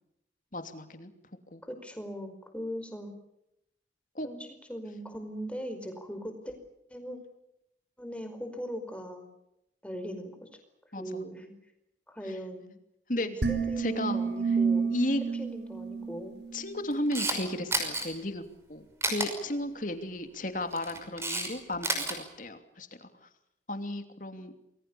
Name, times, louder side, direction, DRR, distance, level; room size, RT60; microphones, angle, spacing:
voice 1, 0.5-1.1 1.5-1.6 4.1-4.3 10.9-11.2 13.1-13.3 13.8-14.2 14.9-15.2 16.5-18.4 18.7-23.1 23.7-24.5, left 1 dB, 45° left, 8 dB, 2.9 m, -34 dB
voice 2, 1.6-3.1 4.2-6.5 6.9-7.2 8.0-9.3 9.8-10.5 11.0-11.5 12.1-12.7 13.1-14.9 15.3-16.4, equal, 5° left, 6 dB, 4.9 m, -40 dB
sound 1, 13.4-16.8, right 5 dB, 75° right, 4.9 m, -30 dB
Camera, 16.9-17.4 17.7-18.0 19.0-19.3 20.6-21.5 21.7-22.1, right 2 dB, 15° right, 5.7 m, -30 dB
29.0 x 22.0 x 7.0 m, 0.83 s
head